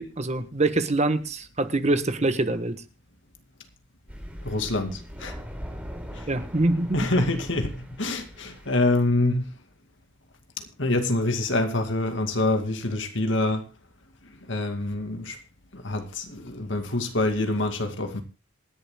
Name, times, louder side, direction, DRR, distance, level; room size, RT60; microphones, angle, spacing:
voice 1, 0.0-2.7 6.3-7.0, right 2 dB, 35° right, 1.3 m, -24 dB
Thunder, 4.1-8.9, equal, 5° right, 3.7 m, -40 dB
voice 2, 4.4-5.4 6.1-6.3 6.9-9.5 10.6-13.7 14.5-15.4 15.7-18.2, left 2 dB, 65° left, 2.3 m, -26 dB
27.0 x 11.0 x 2.2 m
head